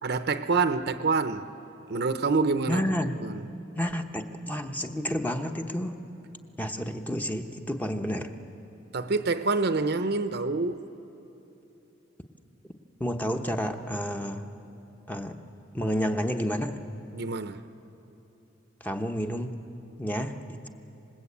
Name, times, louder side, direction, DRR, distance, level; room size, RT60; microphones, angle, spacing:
voice 1, 0.0-1.5 1.9-2.8 3.2-3.4 8.9-10.9 17.1-17.6, right 4 dB, 60° right, 0.8 m, -26 dB
voice 2, 2.7-3.2 3.8-6.0 6.6-8.3 13.0-14.4 15.1-15.4 15.7-16.7 18.8-19.6 20.0-20.3, equal, 10° left, 0.9 m, -30 dB
27.0 x 20.0 x 8.5 m
head